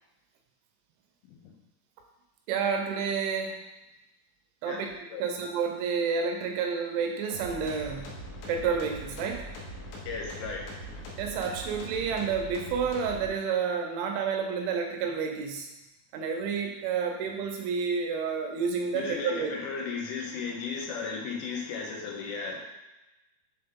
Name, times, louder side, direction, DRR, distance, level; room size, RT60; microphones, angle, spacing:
voice 1, 2.5-3.6 4.6-8.2 8.5-9.4 11.2-15.7 16.1-19.5, right 6 dB, 80° right, 3 dB, 2.9 m, -30 dB
sound 1, 7.3-13.3, equal, 75° left, 3.4 m, -42 dB
voice 2, 10.1-10.6 18.9-22.6, left 5 dB, 90° left, -1 dB, 3.6 m, -35 dB
7.7 x 3.6 x 3.6 m, 1.0 s
omnidirectional pair, 5.6 m